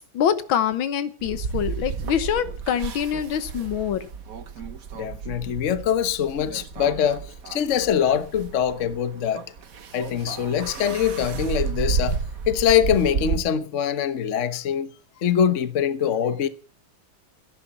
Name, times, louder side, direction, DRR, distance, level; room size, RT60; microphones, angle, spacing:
voice 1, 0.0-4.1, left 9 dB, 85° left, 1.9 m, -25 dB
sound 1, 1.2-13.4, right 6 dB, 50° right, 1.5 m, -32 dB
voice 2, 4.9-9.4 9.9-12.2 12.5-14.9 15.2-16.5, left 8 dB, 45° left, 1.2 m, -23 dB
14.0 x 11.0 x 7.2 m
omnidirectional pair, 2.1 m